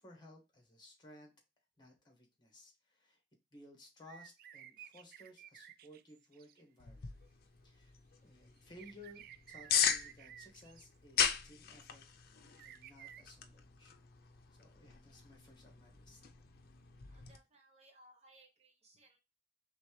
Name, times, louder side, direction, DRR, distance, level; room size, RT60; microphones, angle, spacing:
voice 1, 0.0-1.3 1.8-3.2 3.5-7.2 7.6-8.0 8.2-13.9 14.6-16.2, left 1 dB, 25° left, 2 dB, 1.5 m, -58 dB
sound 1, 4.0-6.6 8.6-10.9 12.6-13.2, right 10 dB, 55° right, 0.3 m, -55 dB
sound 2, 6.8-17.4, left 8 dB, 55° left, 0.5 m, -39 dB
voice 2, 17.1-19.2, right 1 dB, 35° right, 2 dB, 1.0 m, -64 dB
4.3 x 3.4 x 3.2 m, 0.25 s
head